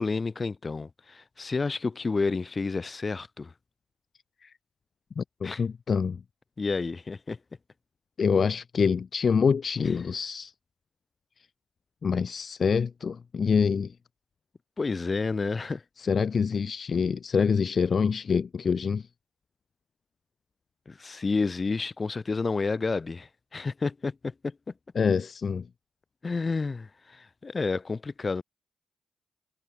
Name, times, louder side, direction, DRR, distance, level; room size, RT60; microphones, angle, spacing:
voice 1, 0.0-3.5 5.4-5.6 6.6-7.4 14.8-15.8 20.9-24.5 26.2-28.4, left 4 dB, 40° left, 2.8 m, -30 dB
voice 2, 5.2-6.2 8.2-10.5 12.0-13.9 16.0-19.1 24.9-25.7, left 6 dB, 55° left, 1.1 m, -26 dB
supercardioid pair, 50°, 0 cm